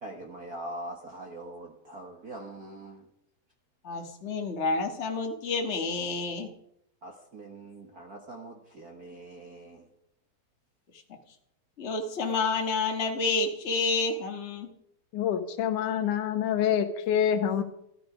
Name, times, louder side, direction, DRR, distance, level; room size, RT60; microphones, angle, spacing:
voice 1, 0.0-3.1 7.0-9.9, right 1 dB, 50° right, 2 dB, 1.2 m, -43 dB
voice 2, 3.8-6.5 11.8-14.7, left 3 dB, 35° left, 3 dB, 1.1 m, -29 dB
voice 3, 15.1-17.6, left 9 dB, 85° left, 8 dB, 2.7 m, -26 dB
13.5 x 13.5 x 5.0 m, 0.77 s
omnidirectional pair, 3.5 m